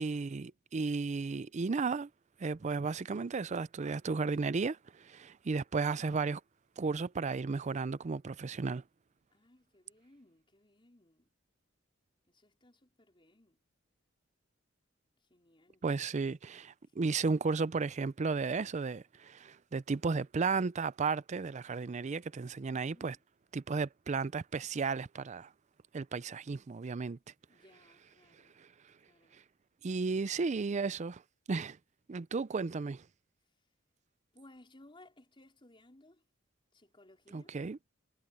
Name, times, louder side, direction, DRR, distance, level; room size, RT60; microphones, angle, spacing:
voice 1, 0.0-2.1 2.4-6.4 6.8-8.8 15.8-23.2 23.5-25.5 25.9-27.2 28.6-28.7 29.8-31.2 31.5-31.8 32.1-33.0 37.3-37.8, right 4 dB, 35° right, 0.4 m, -34 dB
voice 2, 9.3-11.3 12.2-13.6 15.3-15.8 16.8-17.1 22.7-23.2 27.5-28.6 29.0-29.4 34.3-36.2 36.7-37.6, left 1 dB, 25° left, 4.5 m, -61 dB
head